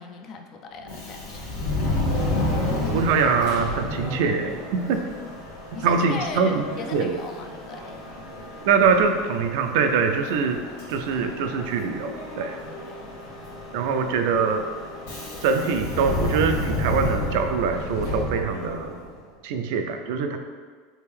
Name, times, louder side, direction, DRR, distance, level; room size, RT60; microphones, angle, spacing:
voice 1, 0.0-1.6 5.7-7.8 12.9-13.0, left 4 dB, 45° left, 4 dB, 0.4 m, -37 dB
Subway metro underground, 0.8-19.2, left 1 dB, 80° left, 1.1 m, -31 dB
voice 2, 2.9-5.0 5.8-6.6 6.9-7.2 8.7-10.6 10.9-12.6 13.7-14.6 15.4-19.0 19.4-20.4, right 5 dB, 65° right, 6 dB, 0.3 m, -23 dB
3.4 x 2.6 x 3.3 m, 1.5 s
hypercardioid pair, 95°, 0 cm